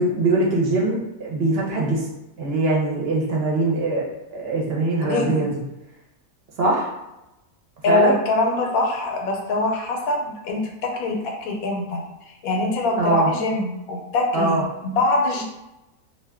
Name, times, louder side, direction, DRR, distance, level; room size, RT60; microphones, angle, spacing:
voice 1, 0.0-2.0 2.4-4.0 4.3-5.5 6.6-6.9 7.9-8.1 13.0-13.3 14.3-14.7, right 2 dB, 50° right, -3 dB, 0.9 m, -22 dB
voice 2, 5.0-5.5 7.8-12.0 12.4-15.4, left 2 dB, 85° left, 1 dB, 1.1 m, -23 dB
2.5 x 2.4 x 3.4 m, 0.93 s
omnidirectional pair, 1.5 m